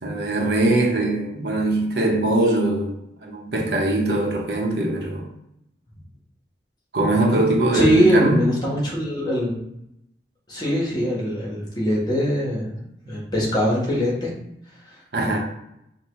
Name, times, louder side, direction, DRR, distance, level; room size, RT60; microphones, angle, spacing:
voice 1, 0.0-3.0 3.2-5.3 6.9-8.4 13.0-13.2 15.1-15.4, right 2 dB, 70° right, 0 dB, 0.9 m, -21 dB
voice 2, 7.7-9.6 10.5-12.8 13.0-14.3 14.9-15.4, equal, 25° left, -4 dB, 1.2 m, -22 dB
5.6 x 2.3 x 3.0 m, 0.80 s
head